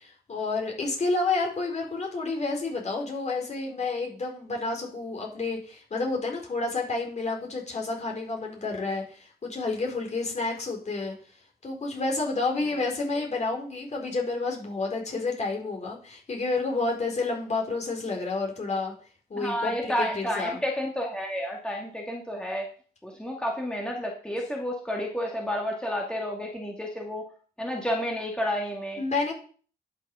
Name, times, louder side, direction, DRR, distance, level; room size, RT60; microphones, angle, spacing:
voice 1, 0.0-11.1 11.6-18.9 19.3-20.6 29.0-29.3, left 3 dB, 40° left, 0 dB, 4.6 m, -30 dB
voice 2, 19.4-22.7 23.0-27.2 27.6-29.0, equal, 5° left, 0 dB, 2.2 m, -30 dB
11.0 x 6.6 x 5.6 m, 0.43 s
cardioid pair, 85°, 17 cm